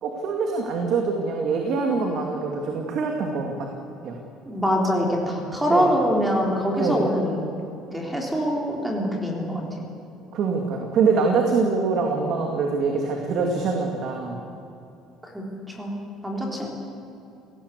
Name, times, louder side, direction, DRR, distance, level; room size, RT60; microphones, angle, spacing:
voice 1, 0.0-3.5 4.0-4.2 5.7-5.9 6.8-7.0 10.3-14.4, right 4 dB, 45° right, 2 dB, 2.6 m, -24 dB
voice 2, 4.4-7.4 7.9-9.6 15.2-15.9 16.2-16.7, equal, 5° right, -1 dB, 3.5 m, -24 dB
29.5 x 18.0 x 8.4 m, 2.7 s
cardioid pair, 180°, 0 cm